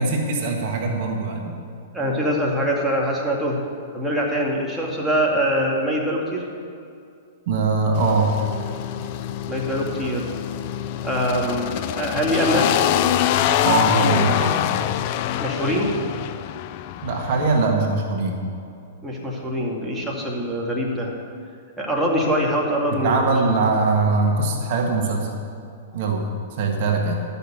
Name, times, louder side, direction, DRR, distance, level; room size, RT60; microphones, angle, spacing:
voice 1, 0.0-1.6 7.5-8.3 13.6-14.7 17.0-18.4 22.9-25.3 25.9-27.2, right 3 dB, 55° right, 1 dB, 1.6 m, -22 dB
voice 2, 1.9-3.6 3.9-6.5 9.5-10.3 11.0-12.7 15.4-15.9 19.0-21.2 21.8-23.3, equal, 5° right, -4 dB, 2.1 m, -23 dB
sound 1, 7.9-17.6, left 11 dB, 50° left, 0.4 m, -25 dB
12.0 x 6.9 x 7.5 m, 2.4 s
hypercardioid pair, 115°, 0 cm